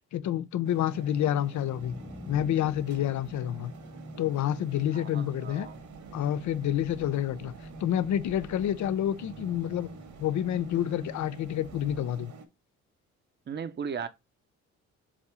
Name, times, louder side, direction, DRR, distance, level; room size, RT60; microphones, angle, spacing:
voice 1, 0.1-2.0 2.3-3.7 4.2-5.7 6.1-9.9 10.2-12.3, left 11 dB, 70° left, 0.7 m, -28 dB
sound 1, 0.6-12.5, right 2 dB, 75° right, 1.9 m, -45 dB
sound 2, 1.5-7.4, left 1 dB, ahead, 0.5 m, -50 dB
voice 2, 4.9-5.8 13.5-14.1, right 6 dB, 35° right, 0.8 m, -36 dB
Accelerating revving vroom, 5.5-12.0, right 5 dB, 55° right, 1.2 m, -53 dB
7.5 x 2.8 x 4.8 m
cardioid pair, 90°, 30 cm